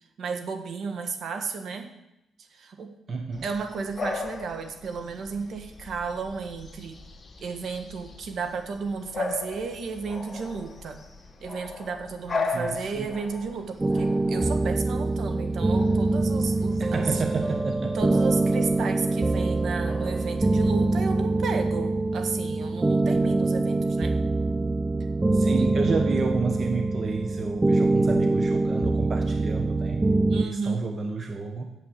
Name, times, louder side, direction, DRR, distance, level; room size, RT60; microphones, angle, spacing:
voice 1, 0.2-1.9 2.5-2.9 3.4-7.0 7.4-11.0 11.4-17.2 17.9-24.1 25.6-25.7 30.3-30.8, right 5 dB, 60° right, 6 dB, 1.6 m, -33 dB
voice 2, 3.1-3.4 12.5-13.1 16.8-18.0 25.3-30.1 30.4-31.7, right 4 dB, 40° right, 4 dB, 1.2 m, -30 dB
Bark / Bird vocalization bird call bird song, 3.3-20.9, left 3 dB, 30° left, 1.8 m, -38 dB
sound 1, 13.8-30.5, right 2 dB, 20° right, 0.3 m, -24 dB
8.7 x 7.9 x 7.5 m, 0.86 s
cardioid pair, 90°, 0 cm